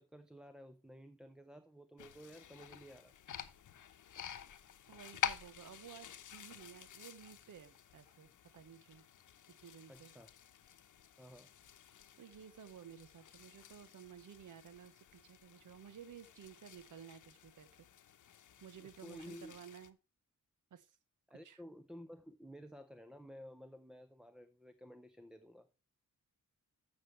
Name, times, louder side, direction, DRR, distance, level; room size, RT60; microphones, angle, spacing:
voice 1, 0.0-3.1 9.9-10.3 11.2-11.5 18.8-19.5 21.3-25.7, equal, ahead, 0.5 m, -54 dB
sound 1, 2.0-19.9, left 9 dB, 70° left, 0.9 m, -49 dB
voice 2, 4.9-9.0 9.6-10.1 12.2-17.9 18.6-20.0 20.7-21.0 21.4-21.6, right 8 dB, 75° right, 1.0 m, -55 dB
14.0 x 6.5 x 3.1 m
wide cardioid pair, 175°, 31 cm